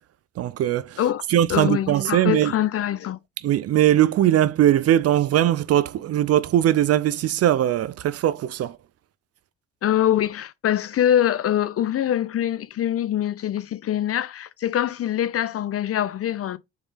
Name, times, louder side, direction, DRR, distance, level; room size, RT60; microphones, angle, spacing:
voice 1, 0.4-1.0 1.3-2.5 3.4-8.8, right 12 dB, 55° right, 0.4 m, -20 dB
voice 2, 1.5-3.2 9.8-16.6, left 11 dB, 50° left, 0.6 m, -24 dB
4.1 x 3.5 x 3.4 m
cardioid pair, 90°, 30 cm